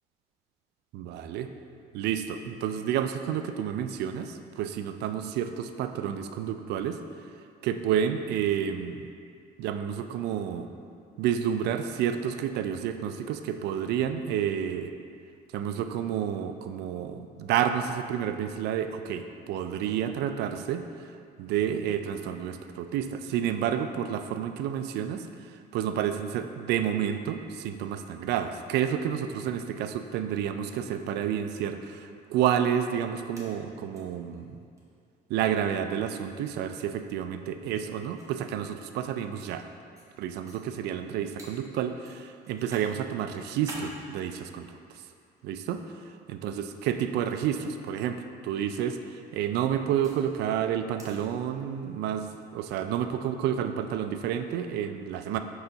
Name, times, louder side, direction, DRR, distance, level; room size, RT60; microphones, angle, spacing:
voice 1, 0.9-1.5 1.9-7.0 7.6-9.1 9.6-10.7 11.2-14.9 15.5-20.8 21.4-25.3 25.7-34.6 35.3-39.6 40.2-44.8 45.4-45.8 46.3-55.4, right 9 dB, 80° right, 8 dB, 0.4 m, -30 dB
sound 1, 33.4-34.0 34.3-34.4 34.8-34.9 36.0-36.2 37.3-37.4 38.2-39.5 40.0-40.1 40.4-40.6 41.4-41.5 42.1-42.9 43.3-43.9 44.7-45.5 46.5-46.8 47.4-47.6 49.0-50.2 51.0-51.2, right 2 dB, 20° right, 1.2 m, -47 dB
4.8 x 3.8 x 5.5 m, 2.3 s
cardioid pair, 110°, 17 cm